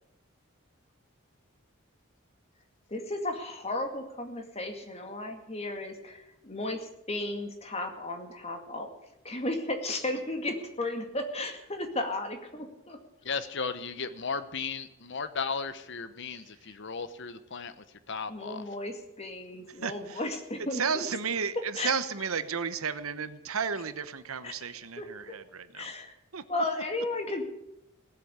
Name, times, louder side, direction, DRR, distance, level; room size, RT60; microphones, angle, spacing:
voice 1, 2.9-8.9 9.2-13.0 18.3-20.4 20.7-21.1 21.6-21.9 24.4-24.5 25.0-25.1 25.7-26.1 26.5-27.5, left 2 dB, 30° left, 5 dB, 2.2 m, -34 dB
voice 2, 13.2-18.7, left 5 dB, 55° left, 13 dB, 0.9 m, -35 dB
voice 3, 19.8-20.2 20.8-25.9 26.3-26.4, right 6 dB, 80° right, 12 dB, 1.1 m, -33 dB
18.0 x 8.0 x 9.6 m, 0.86 s
head